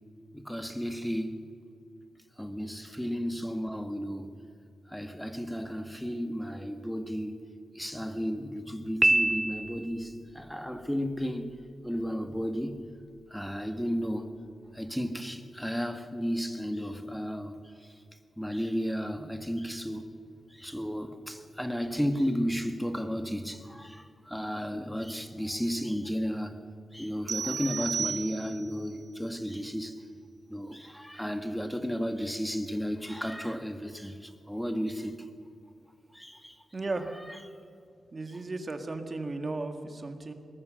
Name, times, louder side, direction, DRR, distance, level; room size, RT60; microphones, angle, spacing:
voice 1, 0.3-1.5 2.4-4.3 4.9-7.4 7.8-11.5 11.8-12.8 13.3-14.3 14.7-17.6 18.4-20.0 20.5-26.6 26.9-30.0 30.5-35.3 36.1-36.6, equal, 5° left, 1.7 m, -33 dB
Piano, 9.0-10.1, right 1 dB, 20° right, 0.4 m, -25 dB
sound 1, 27.3-28.8, right 6 dB, 75° right, 0.6 m, -34 dB
voice 2, 36.7-37.1 38.1-40.3, right 3 dB, 35° right, 1.9 m, -35 dB
21.5 x 20.0 x 6.5 m
wide cardioid pair, 95°, 0 cm